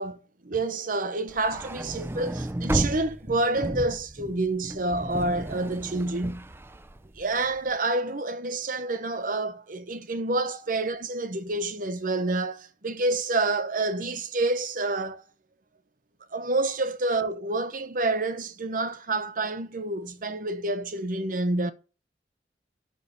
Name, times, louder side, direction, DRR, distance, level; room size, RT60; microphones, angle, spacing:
voice 1, 0.0-6.5 7.2-15.2 16.3-21.7, right 2 dB, 50° right, 1.0 m, -28 dB
sound 1, 1.3-7.6, right 1 dB, 15° right, 0.5 m, -33 dB
13.0 x 5.0 x 8.3 m
head